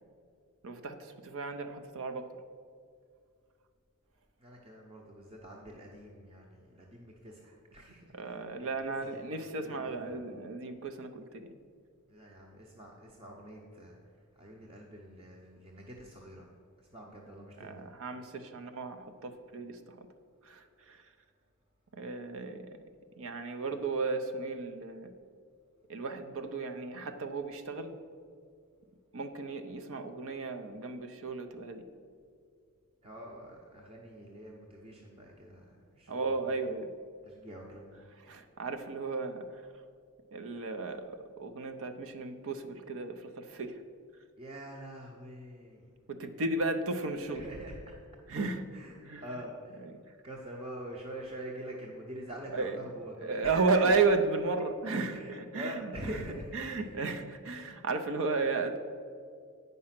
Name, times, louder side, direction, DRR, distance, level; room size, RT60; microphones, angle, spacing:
voice 1, 0.6-2.3 8.1-11.5 17.6-20.1 20.4-21.0 21.9-22.7 23.2-25.1 25.9-27.9 29.1-31.9 36.1-36.9 38.2-39.5 40.3-43.8 46.1-47.4 48.3-48.6 49.1-49.2 49.8-49.9 52.5-52.8 53.2-56.2 56.5-58.8, right 3 dB, 65° right, 8 dB, 0.6 m, -34 dB
voice 2, 4.4-10.2 12.1-14.0 14.3-16.5 16.8-17.8 33.0-36.4 37.2-38.0 44.4-45.9 47.3-48.0 48.7-49.8 50.2-53.9 55.1-56.9, right 1 dB, 25° right, -1 dB, 0.8 m, -45 dB
8.6 x 5.4 x 5.8 m, 2.2 s
head